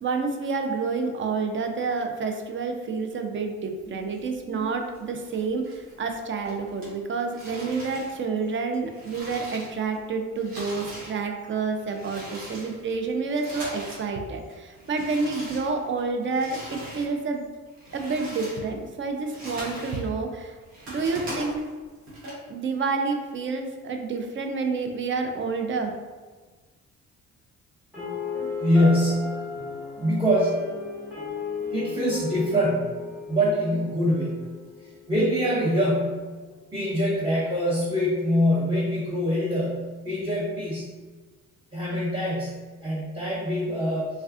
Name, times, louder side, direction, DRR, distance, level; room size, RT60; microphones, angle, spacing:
voice 1, 0.0-17.4 17.9-20.6 20.9-21.6 22.5-25.9, right 4 dB, 35° right, 4 dB, 0.4 m, -29 dB
sound 1, 3.8-5.0 5.3-6.1 6.4-10.0 10.3-14.1 14.4-17.1 17.5-20.1 20.4-22.3, right 1 dB, 80° right, 1.1 m, -41 dB
sound 2, 27.9-35.9, left 4 dB, ahead, 1.2 m, -35 dB
voice 2, 28.6-29.5 30.0-30.7 31.7-34.5 34.8-36.3 36.7-40.9 41.7-44.1, equal, 15° right, -10 dB, 0.9 m, -24 dB
3.2 x 2.3 x 2.4 m, 1.3 s
cardioid pair, 80°, 33 cm